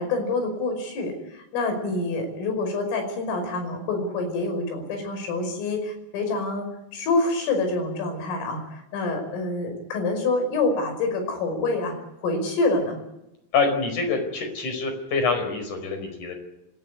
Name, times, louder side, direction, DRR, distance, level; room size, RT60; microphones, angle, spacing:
voice 1, 0.0-11.9 12.2-13.0, left 3 dB, 75° left, 5 dB, 7.9 m, -27 dB
voice 2, 13.5-16.3, left 4 dB, 40° left, 6 dB, 6.0 m, -25 dB
27.5 x 14.0 x 9.8 m, 0.86 s
omnidirectional pair, 5.9 m